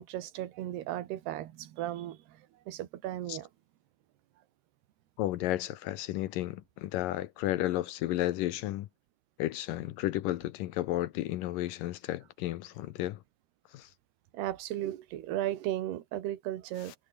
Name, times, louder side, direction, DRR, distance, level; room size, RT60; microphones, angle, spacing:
voice 1, 0.0-2.4 2.7-3.5 14.3-16.9, right 13 dB, 75° right, 3.7 m, -35 dB
voice 2, 5.2-8.9 9.4-13.2 13.7-13.9 16.9-17.0, left 15 dB, 75° left, 2.1 m, -33 dB
omnidirectional pair, 4.8 m